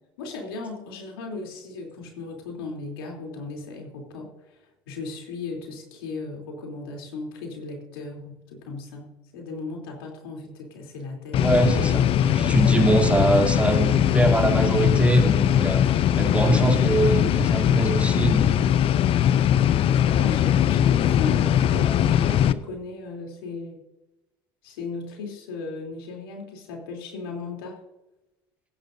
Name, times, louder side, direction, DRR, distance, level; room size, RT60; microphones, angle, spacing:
voice 1, 0.2-4.6 4.9-11.7 19.4-23.8 24.6-27.8, left 3 dB, 80° left, 1 dB, 3.2 m, -36 dB
sound 1, 11.3-22.5, left 10 dB, 50° left, 0.6 m, -20 dB
voice 2, 11.4-15.9 16.2-18.8, right 2 dB, 10° right, 1 dB, 2.9 m, -23 dB
21.0 x 10.5 x 2.6 m, 0.99 s
hypercardioid pair, 65°, 12 cm